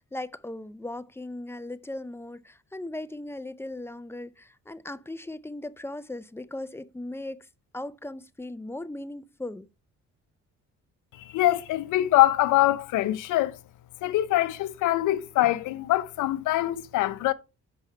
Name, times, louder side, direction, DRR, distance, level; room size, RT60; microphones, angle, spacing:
voice 1, 0.0-7.5 7.7-9.7, left 1 dB, 10° left, 0.4 m, -38 dB
voice 2, 11.1-13.6 14.0-17.3, left 15 dB, 80° left, 0.6 m, -24 dB
5.7 x 5.4 x 4.5 m
cardioid pair, 90°, 30 cm